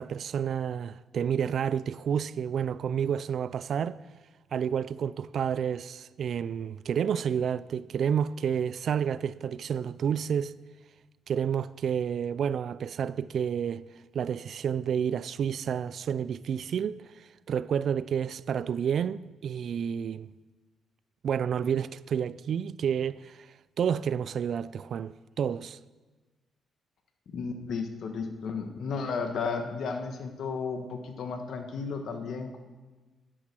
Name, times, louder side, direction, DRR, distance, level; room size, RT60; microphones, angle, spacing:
voice 1, 0.0-4.0 4.5-10.5 11.3-13.9 14.1-20.3 21.2-23.5 23.8-25.8, right 8 dB, 60° right, 0.3 m, -30 dB
voice 2, 27.3-32.6, left 5 dB, 65° left, 1.4 m, -33 dB
12.5 x 8.9 x 6.1 m
cardioid pair, 90°, 0 cm